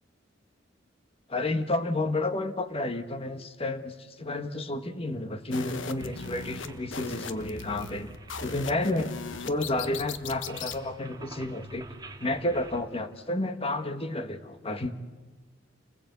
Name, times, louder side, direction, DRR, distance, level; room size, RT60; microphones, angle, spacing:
voice 1, 1.3-9.1 9.4-11.8 12.2-15.0, left 2 dB, 30° left, 9 dB, 1.5 m, -31 dB
sound 1, 5.5-10.8, left 5 dB, 90° left, 1.2 m, -39 dB
sound 2, 6.0-12.8, right 2 dB, 20° right, 1.8 m, -48 dB
30.0 x 20.5 x 8.3 m, 1.3 s
head